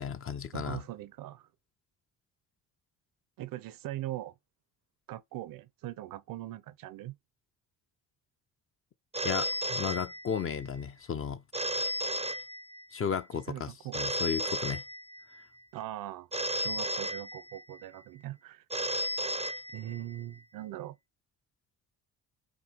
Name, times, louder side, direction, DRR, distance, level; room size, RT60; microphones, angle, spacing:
voice 1, 0.0-0.8 9.2-11.4 12.9-14.8, left 7 dB, 40° left, 0.7 m, -34 dB
voice 2, 0.5-1.5 3.4-4.3 5.1-7.2 13.5-14.0 15.7-16.3 16.6-18.6 19.7-20.9, right 14 dB, 90° right, 0.9 m, -41 dB
Telephone, 9.1-10.6 11.5-13.0 13.9-15.4 16.3-17.8 18.7-20.2, equal, 20° right, 0.5 m, -34 dB
8.2 x 2.8 x 4.6 m
cardioid pair, 105°, 32 cm